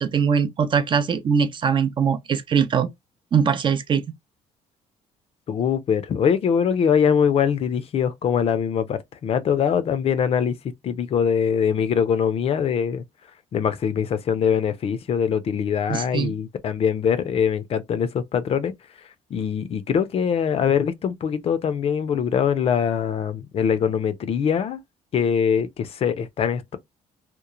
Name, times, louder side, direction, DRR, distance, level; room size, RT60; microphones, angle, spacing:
voice 1, 0.0-2.9 3.3-4.0 15.9-16.3, right 7 dB, 35° right, 0.4 m, -21 dB
voice 2, 5.5-10.6 10.8-13.0 13.5-18.7 19.0-24.8 25.1-26.8, left 7 dB, 45° left, 0.4 m, -23 dB
3.0 x 2.0 x 2.3 m
cardioid pair, 120°, 13 cm